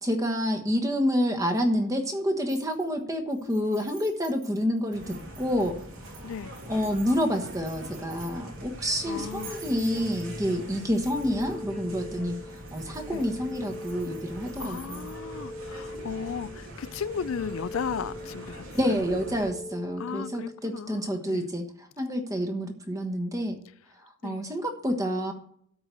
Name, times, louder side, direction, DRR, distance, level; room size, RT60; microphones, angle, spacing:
voice 1, 0.0-5.8 6.2-6.3 6.7-12.4 12.7-15.1 18.7-21.6 22.0-23.6 24.2-25.3, equal, 15° right, 1.2 m, -28 dB
sound 1, 2.5-3.0 3.3-8.6 9.2-10.4 10.8-11.6 12.5-15.2, right 6 dB, 45° right, 4.9 m, -50 dB
sound 2, 4.9-19.5, right 1 dB, 85° right, 3.1 m, -43 dB
sound 3, 9.0-20.7, left 1 dB, 10° left, 0.8 m, -42 dB
voice 2, 9.1-9.6 13.1-13.3 14.6-19.0 20.0-21.5 24.2-24.4, left 6 dB, 80° left, 0.4 m, -35 dB
12.5 x 4.8 x 8.2 m
head